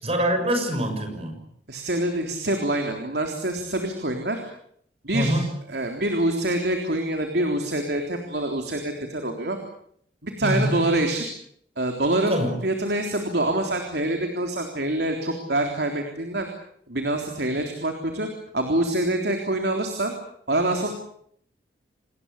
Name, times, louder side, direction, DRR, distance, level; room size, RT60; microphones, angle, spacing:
voice 1, 0.0-1.4 5.1-5.4 10.4-10.7 12.3-12.5, equal, 35° right, 6 dB, 6.7 m, -24 dB
voice 2, 1.7-4.4 5.0-5.4 5.7-9.6 10.2-11.3 11.8-16.5 16.9-18.3 18.5-20.1 20.5-20.9, right 1 dB, 65° right, 4 dB, 3.7 m, -25 dB
28.5 x 20.5 x 8.4 m, 0.65 s
head